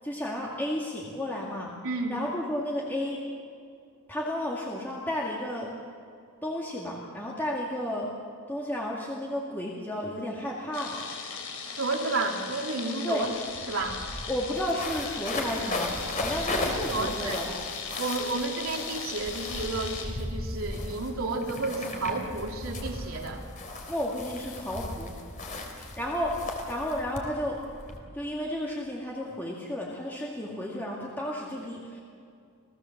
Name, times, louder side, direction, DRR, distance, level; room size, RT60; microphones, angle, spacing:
voice 1, 0.0-1.7 2.1-3.2 4.1-5.7 6.4-8.1 8.5-11.0 13.0-13.3 14.3-17.5 23.9-25.1 25.7-26.4 26.7-27.6 28.1-32.0, left 1 dB, 10° left, -3 dB, 2.3 m, -32 dB
voice 2, 1.8-2.2 11.8-13.3 13.7-14.0 16.6-17.4 18.0-23.4, right 3 dB, 70° right, 1 dB, 3.1 m, -31 dB
sound 1, 10.7-20.1, left 5 dB, 85° left, 3.9 m, -38 dB
sound 2, 13.2-13.3 13.5-28.0, left 2 dB, 35° left, 3.4 m, -36 dB
28.5 x 18.0 x 7.3 m, 2.4 s
head